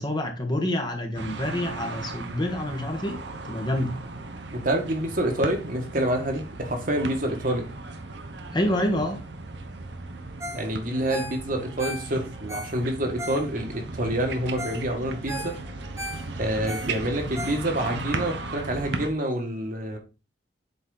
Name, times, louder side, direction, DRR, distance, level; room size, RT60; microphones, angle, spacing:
voice 1, 0.0-3.2 3.5-3.9 8.5-9.2, left 1 dB, 25° left, 1.2 m, -27 dB
sound 1, 1.1-19.1, right 3 dB, 65° right, 0.9 m, -36 dB
voice 2, 4.5-7.7 10.5-15.6 16.4-20.0, right 1 dB, 50° right, 1.6 m, -27 dB
Ringtone, 10.4-10.7 10.9-13.8 14.3-14.4 14.6-14.9 15.1-18.0 18.4-18.5, equal, 15° right, 1.4 m, -37 dB
8.1 x 4.2 x 4.0 m
head